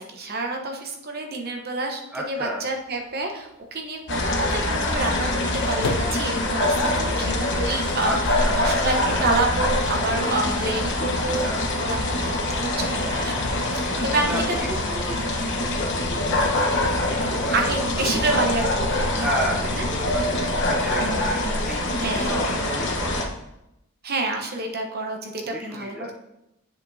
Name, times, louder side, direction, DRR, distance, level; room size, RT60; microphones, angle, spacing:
voice 1, 0.0-2.0 2.3-5.4 5.7-8.2 8.5-14.8 17.5-18.9 19.7-19.9 21.9-22.5 24.0-26.1, right 2 dB, 45° right, 3 dB, 0.9 m, -28 dB
voice 2, 2.1-2.6 8.0-9.3 11.2-11.7 13.8-15.2 15.5-16.7 17.1-17.7 18.1-18.4 19.2-23.3 25.4-26.1, right 1 dB, 5° right, -2 dB, 0.6 m, -33 dB
sound 1, 2.7-2.8 3.0-3.1 5.0-21.3, left 3 dB, 75° left, 0.7 m, -39 dB
sound 2, 4.1-23.2, left 1 dB, 55° left, 1.0 m, -24 dB
8.0 x 7.0 x 2.7 m, 0.88 s
head